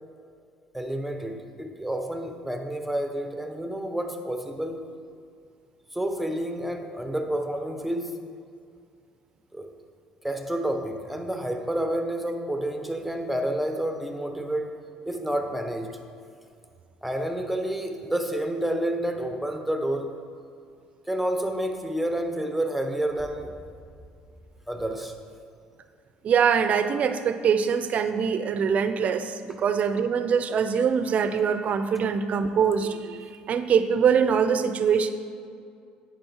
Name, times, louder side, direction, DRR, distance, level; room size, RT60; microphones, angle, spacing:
voice 1, 0.7-4.9 5.9-8.1 9.5-9.7 10.2-14.8 15.1-16.0 17.0-20.1 21.1-23.6 24.7-25.1 29.5-29.6, right 1 dB, 5° right, 5 dB, 0.8 m, -29 dB
voice 2, 26.2-35.1, right 7 dB, 50° right, 10 dB, 0.5 m, -23 dB
8.7 x 5.2 x 4.6 m, 2.3 s
supercardioid pair, 80°, 3 cm